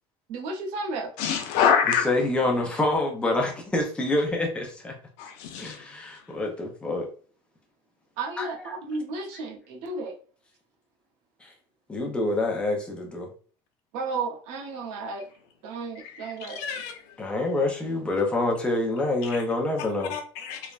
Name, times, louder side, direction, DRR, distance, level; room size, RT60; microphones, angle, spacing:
voice 1, 0.3-1.1 8.2-10.2 13.9-15.3 15.6-16.7, right 3 dB, 65° right, 0.7 m, -33 dB
voice 2, 1.2-2.1 5.2-5.8 16.5-17.0 20.1-20.6, left 7 dB, 80° left, 0.6 m, -25 dB
voice 3, 1.8-4.9 5.6-7.1 8.4-8.7 11.4-11.5 11.9-13.3 17.2-20.1, left 2 dB, 10° left, 0.5 m, -27 dB
3.1 x 2.0 x 2.4 m
cardioid pair, 180°, 13 cm